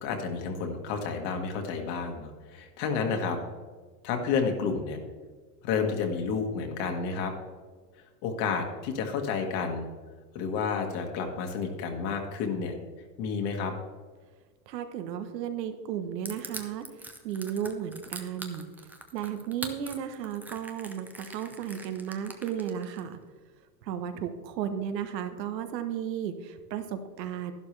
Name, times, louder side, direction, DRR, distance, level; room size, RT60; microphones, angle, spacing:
voice 1, 0.0-3.4 4.0-5.0 5.6-7.3 8.2-9.9 10.3-12.8 13.2-13.7, left 5 dB, 50° left, 3 dB, 1.9 m, -30 dB
voice 2, 14.7-18.6 19.1-23.2 23.8-27.5, right 9 dB, 80° right, 8 dB, 1.3 m, -34 dB
Crushing, 16.2-23.0, right 2 dB, 5° right, 0.6 m, -42 dB
11.5 x 11.5 x 3.4 m, 1.4 s
supercardioid pair, 135°, 49 cm